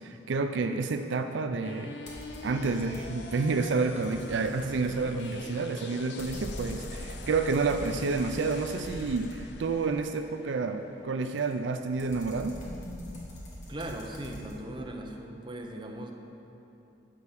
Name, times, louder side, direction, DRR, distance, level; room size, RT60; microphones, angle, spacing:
voice 1, 0.0-2.0 2.4-12.6, right 4 dB, 70° right, 7 dB, 0.4 m, -29 dB
sound 1, 1.6-11.7, left 3 dB, 60° left, 0.6 m, -46 dB
sound 2, 2.1-3.3 3.7-9.9 11.4-14.6, left 1 dB, 40° left, 1.8 m, -43 dB
voice 2, 13.7-16.1, right 1 dB, 25° right, 1 dB, 0.8 m, -38 dB
11.0 x 4.7 x 7.1 m, 2.9 s
head